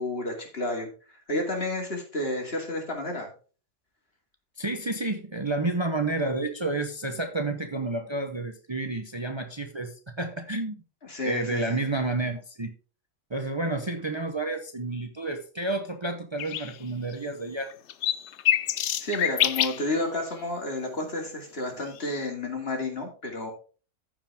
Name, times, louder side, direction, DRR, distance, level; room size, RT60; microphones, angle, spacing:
voice 1, 0.0-3.3 11.0-11.9 19.0-23.5, left 1 dB, 55° left, 1 dB, 2.7 m, -31 dB
voice 2, 4.6-10.8 11.2-12.7 13.3-17.7, right 2 dB, 25° right, 6 dB, 0.8 m, -30 dB
sound 1, 16.4-16.7 17.1-17.2 17.7-19.8 21.9-22.1, left 11 dB, 70° left, 0.9 m, -26 dB
14.5 x 5.1 x 3.5 m, 0.38 s
omnidirectional pair, 1.2 m